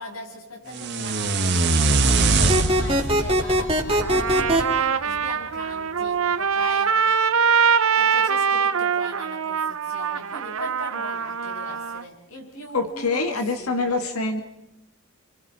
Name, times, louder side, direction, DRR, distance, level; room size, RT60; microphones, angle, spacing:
voice 1, 0.0-6.9 8.0-14.0, left 1 dB, 75° left, 1 dB, 7.0 m, -39 dB
sound 1, 0.7-4.8, right 3 dB, 50° right, 1.7 m, -23 dB
sound 2, 2.5-4.6, equal, 25° right, 2.6 m, -20 dB
Trumpet, 4.0-12.0, right 6 dB, 75° right, 0.7 m, -23 dB
voice 2, 12.7-14.4, left 3 dB, 90° left, 7 dB, 1.9 m, -25 dB
28.5 x 24.5 x 4.9 m, 0.84 s
head